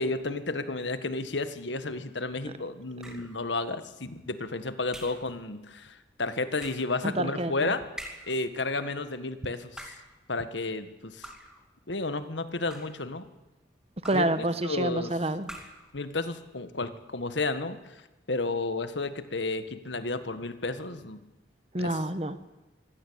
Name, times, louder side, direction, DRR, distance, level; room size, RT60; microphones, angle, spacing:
voice 1, 0.0-7.8 8.3-9.9 10.3-11.3 11.9-13.3 14.1-14.2 14.6-15.1 15.9-17.8 18.3-21.2 21.8-22.0, left 3 dB, 80° left, 11 dB, 1.6 m, -32 dB
sound 1, 3.0-3.4 4.9-5.3 6.6-7.0 8.0-8.4 9.6-10.2 11.2-11.6 12.5-13.1 14.0-14.4 15.4-15.9, equal, 5° right, 2.5 m, -44 dB
voice 2, 7.0-7.7 14.0-15.5 21.7-22.4, right 1 dB, 35° right, 12 dB, 1.3 m, -28 dB
24.5 x 16.5 x 8.7 m, 1.1 s
head